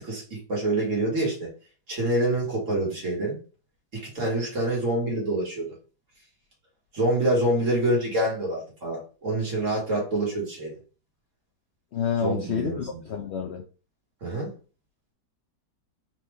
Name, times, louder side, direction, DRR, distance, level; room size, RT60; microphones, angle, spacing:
voice 1, 0.0-1.5 1.9-3.4 4.0-5.7 6.9-10.8 12.2-13.0 14.2-14.5, right 1 dB, 45° right, -3 dB, 2.1 m, -26 dB
voice 2, 11.9-13.6, left 7 dB, 80° left, 2 dB, 0.6 m, -29 dB
4.3 x 2.9 x 3.4 m, 0.36 s
omnidirectional pair, 1.9 m